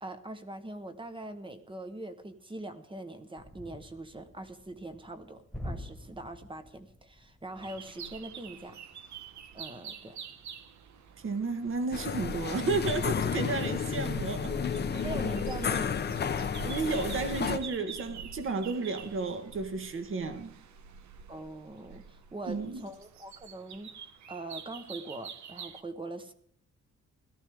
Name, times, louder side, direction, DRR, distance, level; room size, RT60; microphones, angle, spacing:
voice 1, 0.0-8.8 9.5-10.2 14.9-15.9 21.3-23.9 24.3-26.3, right 2 dB, 15° right, 1.1 m, -42 dB
sound 1, 3.4-13.1 13.4-13.6 14.0-14.8, left 1 dB, ahead, 1.7 m, -49 dB
sound 2, 7.6-25.8, right 7 dB, 75° right, 1.1 m, -47 dB
voice 2, 11.2-14.9 16.6-20.5 22.5-22.8, right 3 dB, 45° right, 1.5 m, -32 dB
sound 3, 11.9-17.6, left 6 dB, 35° left, 0.7 m, -32 dB
17.0 x 13.5 x 3.5 m
wide cardioid pair, 155°, 29 cm